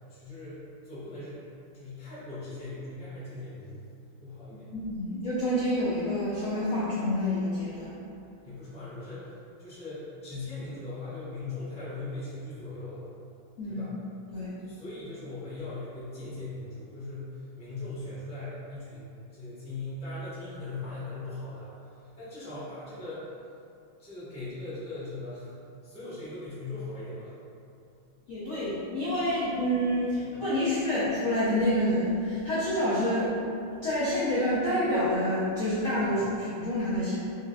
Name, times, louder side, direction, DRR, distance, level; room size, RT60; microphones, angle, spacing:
voice 1, 0.1-1.5 1.7-3.8 4.2-4.7 8.4-13.0 13.7-13.9 14.6-23.3 24.0-25.5 25.8-27.3 30.2-30.3 36.0-36.2, left 2 dB, 5° left, -12 dB, 0.5 m, -40 dB
voice 2, 4.7-7.9 13.6-13.8 14.3-14.5 28.3-33.4 33.8-37.2, left 1 dB, 75° left, -10 dB, 0.7 m, -28 dB
4.9 x 2.3 x 2.2 m, 2.6 s
omnidirectional pair, 2.2 m